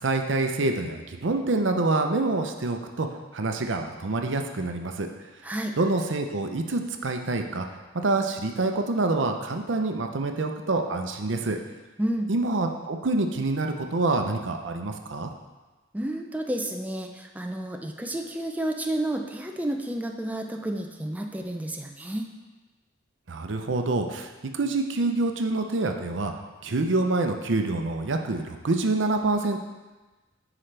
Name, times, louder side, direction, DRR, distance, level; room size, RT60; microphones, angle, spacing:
voice 1, 0.0-3.1 3.3-5.1 5.8-7.7 7.9-11.6 12.3-15.3 23.3-26.3 26.6-29.6, right 2 dB, 75° right, 5 dB, 0.7 m, -26 dB
voice 2, 12.0-12.3 15.9-22.3, right 1 dB, 10° right, 2 dB, 0.4 m, -31 dB
9.8 x 4.9 x 3.3 m, 1.2 s
head